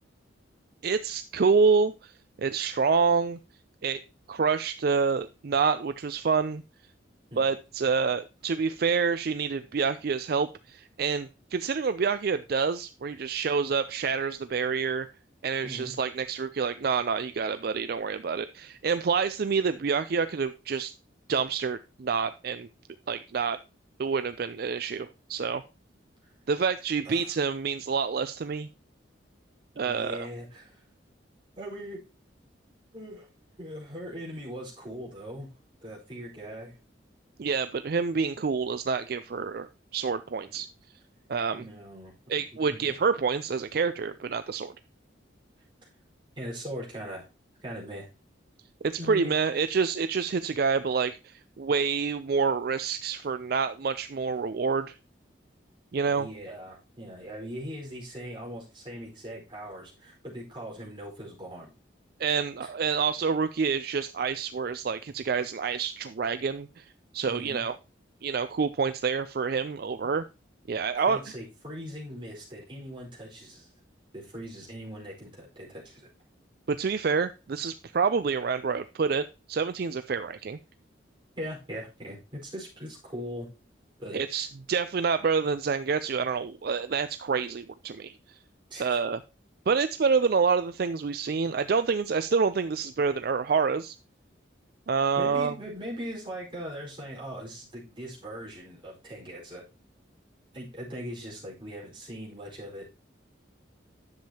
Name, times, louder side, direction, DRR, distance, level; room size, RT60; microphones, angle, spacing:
voice 1, 0.8-2.1 2.4-3.4 3.8-4.0 4.3-6.6 7.4-15.1 15.4-20.9 21.3-22.7 23.1-23.6 24.0-25.6 26.5-28.7 29.8-30.3 37.4-40.7 41.3-41.6 42.3-44.7 48.8-55.0 55.9-56.3 62.2-66.8 67.1-67.8 68.2-70.2 70.7-71.2 76.7-80.6 84.1-88.4 88.8-89.2 89.7-94.0 94.9-95.5, right 5 dB, 50° right, 12 dB, 0.4 m, -27 dB
voice 2, 15.6-15.9 27.0-27.3 29.8-30.8 31.6-32.0 32.9-33.3 33.6-35.5 35.8-36.8 40.5-40.6 41.5-42.1 42.7-43.0 46.3-47.2 47.6-48.1 49.0-49.3 56.0-61.7 62.6-62.7 67.2-67.6 70.9-73.7 74.1-76.1 81.4-83.5 84.0-84.2 88.7-89.0 95.1-99.6 100.5-103.0, equal, 25° right, -4 dB, 4.7 m, -40 dB
10.5 x 7.4 x 2.9 m, 0.30 s
head